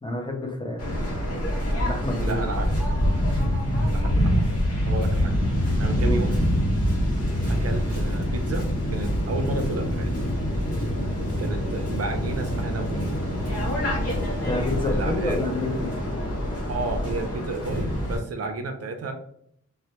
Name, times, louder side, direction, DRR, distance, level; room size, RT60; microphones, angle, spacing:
voice 1, 0.0-0.9 1.8-2.4 6.0-6.2 14.4-15.9, left 2 dB, 15° left, 2 dB, 0.5 m, -29 dB
Waves surf, 0.8-18.2, equal, 50° left, 0.9 m, -25 dB
voice 2, 2.2-5.3 5.8-6.4 7.5-8.7 8.9-10.1 11.4-13.1 14.9-15.4 16.7-19.1, right 3 dB, 55° right, 5 dB, 0.4 m, -33 dB
2.1 x 2.1 x 2.8 m, 0.67 s
wide cardioid pair, 105°, 30 cm